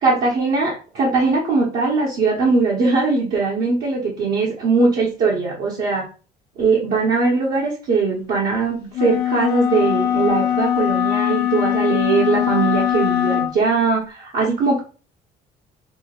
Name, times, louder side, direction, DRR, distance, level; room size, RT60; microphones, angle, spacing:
voice 1, 0.0-6.0 6.6-14.8, right 4 dB, 65° right, -4 dB, 1.1 m, -20 dB
sound 1, 8.9-13.6, left 11 dB, 65° left, 0.9 m, -21 dB
6.0 x 2.2 x 2.4 m, 0.36 s
cardioid pair, 110°, 17 cm